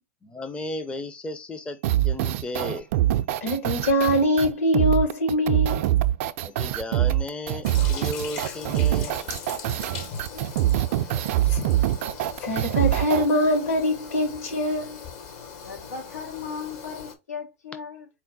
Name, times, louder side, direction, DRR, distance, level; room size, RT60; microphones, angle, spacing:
voice 1, 0.2-1.8 2.0-2.9 6.4-9.2 11.1-11.2, left 1 dB, 10° left, 0.5 m, -34 dB
sound 1, 1.8-13.3, right 13 dB, 60° right, 0.4 m, -24 dB
voice 2, 3.4-5.8 10.0-10.2 11.5-11.6 12.4-15.0, left 1 dB, 65° left, 2.0 m, -23 dB
Toilet flush, 7.6-17.2, left 6 dB, 50° left, 0.9 m, -40 dB
voice 3, 15.6-18.1, left 6 dB, 90° left, 1.2 m, -37 dB
4.3 x 2.1 x 3.8 m
hypercardioid pair, 100°, 8 cm